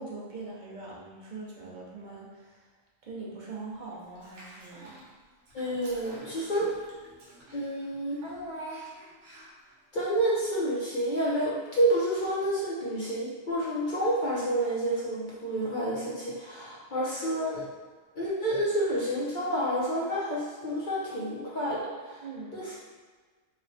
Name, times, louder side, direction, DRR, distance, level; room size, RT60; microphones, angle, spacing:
voice 1, 0.0-2.6 3.0-5.0 22.2-22.6, right 3 dB, 45° right, -4 dB, 0.7 m, -42 dB
Child speech kid speaking / Bathtub (filling or washing), 4.2-5.1 5.5-9.7, right 1 dB, 70° right, 1.1 m, -45 dB
voice 2, 5.5-6.7 7.5-8.2 9.9-17.7 18.2-22.2 22.5-22.7, right 1 dB, 50° left, -7 dB, 0.6 m, -29 dB
3.2 x 2.1 x 3.9 m, 1.5 s
omnidirectional pair, 1.3 m